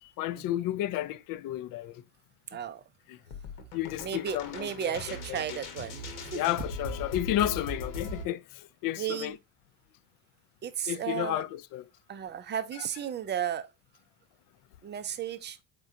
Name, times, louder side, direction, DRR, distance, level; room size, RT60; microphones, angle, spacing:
voice 1, 0.0-2.0 3.1-3.2 3.7-4.9 5.3-5.6 6.3-9.4 10.9-11.9 12.7-12.9, left 14 dB, 45° left, 0.4 m, -32 dB
voice 2, 2.5-2.8 4.0-6.1 6.3-6.4 9.0-9.4 10.6-11.4 12.1-13.7 14.8-15.6, right 9 dB, 25° right, 0.4 m, -34 dB
sound 1, 3.3-8.2, left 2 dB, 80° left, 1.2 m, -39 dB
4.4 x 3.7 x 2.5 m
supercardioid pair, 85°, 47 cm